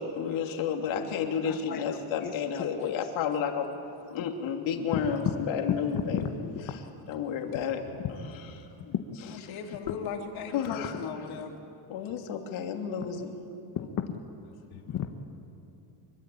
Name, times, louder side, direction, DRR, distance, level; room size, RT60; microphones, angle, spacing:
voice 1, 0.0-3.7 4.1-6.2 7.1-7.8 8.1-8.3 8.6-8.7 10.5-11.0 11.9-13.3, left 7 dB, 75° left, 3 dB, 3.1 m, -31 dB
voice 2, 1.4-1.8 2.2-2.7 4.2-4.3 4.9-5.0 5.9-6.8 8.9-9.0 9.9-10.0 13.7-14.2 14.7-15.1, left 9 dB, 45° left, 3 dB, 1.4 m, -33 dB
voice 3, 9.3-11.5 14.7-14.8, left 6 dB, 90° left, 1 dB, 3.4 m, -38 dB
25.5 x 23.0 x 8.7 m, 2.6 s
cardioid pair, 175°, 48 cm